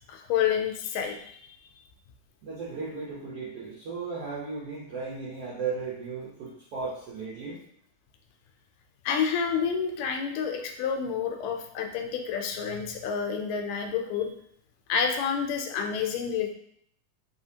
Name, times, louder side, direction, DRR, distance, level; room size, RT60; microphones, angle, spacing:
voice 1, 0.1-1.4 9.1-14.3 14.9-16.5, left 7 dB, 80° left, 4 dB, 2.1 m, -29 dB
voice 2, 2.4-7.6, right 4 dB, 75° right, -8 dB, 1.4 m, -35 dB
4.8 x 3.4 x 2.8 m, 0.69 s
omnidirectional pair, 3.8 m